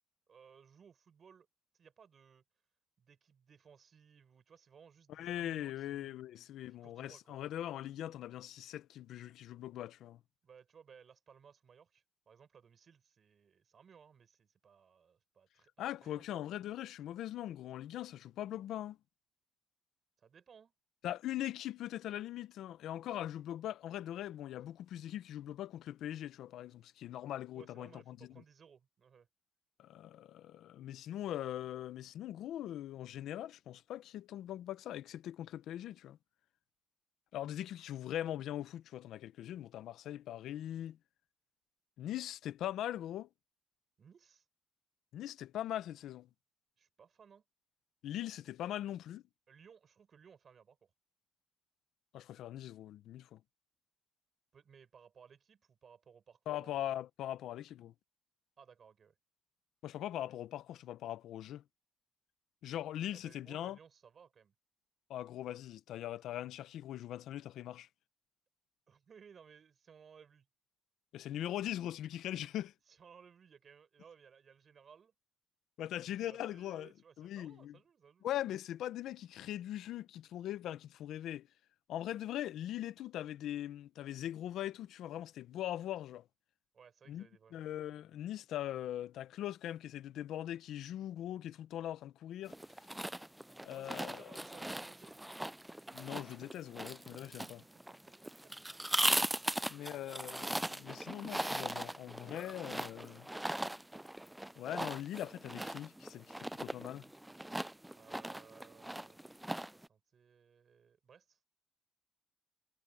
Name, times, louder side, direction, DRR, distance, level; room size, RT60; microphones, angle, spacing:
voice 1, 0.3-1.5 1.7-2.4 3.0-6.2 6.8-7.4 10.4-16.2 20.2-20.7 27.5-29.3 44.0-44.4 46.8-47.4 49.5-50.9 54.5-57.0 58.6-59.1 63.1-64.5 68.9-70.5 72.9-75.1 75.9-78.3 86.7-87.6 93.7-95.2 97.2-97.5 98.1-98.8 99.6-100.0 107.9-109.2 109.6-111.4, right 7 dB, 50° right, 6.5 m, -61 dB
voice 2, 5.1-10.2 15.8-19.0 21.0-28.4 29.8-36.2 37.3-41.0 42.0-43.3 45.1-46.3 48.0-49.2 52.1-53.4 56.5-57.9 59.8-61.6 62.6-63.8 65.1-67.9 71.1-72.7 75.8-76.9 77.2-77.8 78.2-81.5 81.9-86.2 87.1-92.6 93.6-94.3 95.9-97.6 99.7-103.3 104.6-107.1, left 12 dB, 80° left, 0.9 m, -41 dB
sound 1, 92.5-109.9, right 1 dB, 5° right, 0.3 m, -39 dB
cardioid pair, 90°, 0 cm